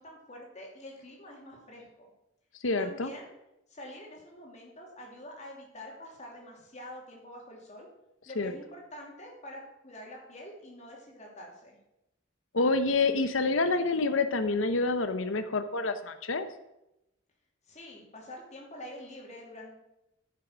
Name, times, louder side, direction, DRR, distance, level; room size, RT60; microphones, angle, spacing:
voice 1, 0.0-2.1 2.8-3.3 3.7-7.9 8.3-11.8 17.7-19.8, left 1 dB, 35° left, -1 dB, 2.7 m, -46 dB
voice 2, 2.6-3.1 8.4-8.6 12.5-16.5, left 3 dB, 70° left, 9 dB, 0.8 m, -27 dB
10.5 x 6.7 x 6.0 m, 0.89 s
head